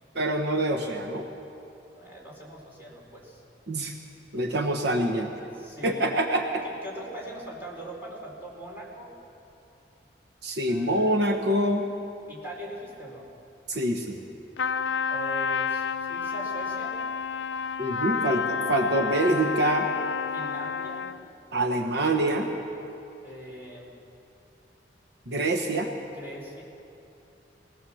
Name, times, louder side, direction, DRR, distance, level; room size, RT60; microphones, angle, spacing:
voice 1, 0.1-1.3 3.7-3.9 4.3-5.3 5.8-6.6 10.4-11.9 13.7-14.2 17.8-19.9 21.5-22.5 25.3-25.9, right 1 dB, 65° right, 3 dB, 1.1 m, -25 dB
voice 2, 1.9-3.4 4.6-4.7 5.4-6.1 6.8-9.1 10.7-11.3 12.3-13.3 15.1-17.0 20.3-21.1 23.2-23.9 26.0-26.6, right 1 dB, 10° right, -4 dB, 4.5 m, -41 dB
Trumpet, 14.6-21.3, left 6 dB, 80° left, 0.5 m, -30 dB
20.0 x 18.5 x 7.1 m, 2.8 s
head